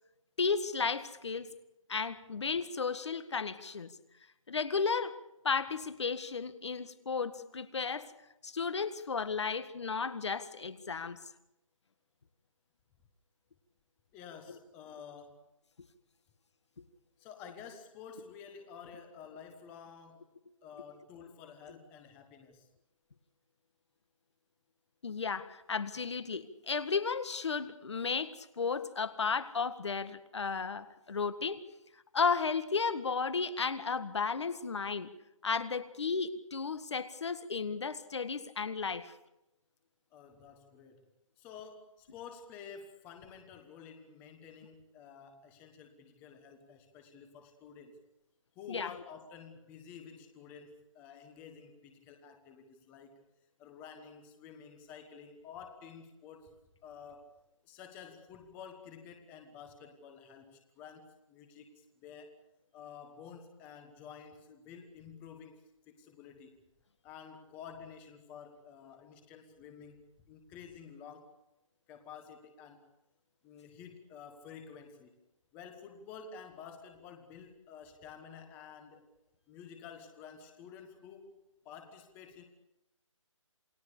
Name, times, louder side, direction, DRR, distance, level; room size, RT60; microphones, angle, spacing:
voice 1, 0.4-1.5 1.9-3.9 4.5-5.2 5.4-8.1 8.4-11.2 25.0-31.6 32.1-35.1 35.4-39.1 48.7-48.9, left 5 dB, 55° left, 12 dB, 1.8 m, -34 dB
voice 2, 14.1-15.4 17.2-20.3 20.6-22.7 40.1-41.1 41.4-48.0 48.5-53.2 53.6-57.3 57.6-62.4 62.7-65.6 65.9-66.5 67.0-71.4 71.9-72.8 73.4-75.2 75.5-79.1 79.5-82.4, left 6 dB, 10° left, 6 dB, 1.3 m, -51 dB
28.5 x 19.0 x 6.8 m, 0.89 s
hypercardioid pair, 170°, 17 cm